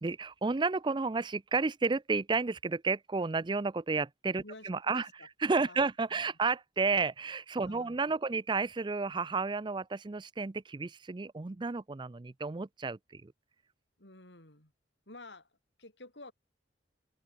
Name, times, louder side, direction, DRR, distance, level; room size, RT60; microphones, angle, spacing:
voice 1, 0.0-5.1 5.4-13.3, right 4 dB, 25° right, 0.5 m, -32 dB
voice 2, 4.4-5.3 5.6-5.9 7.6-8.0 14.0-14.7 15.1-16.3, left 2 dB, 75° left, 6.6 m, -51 dB
head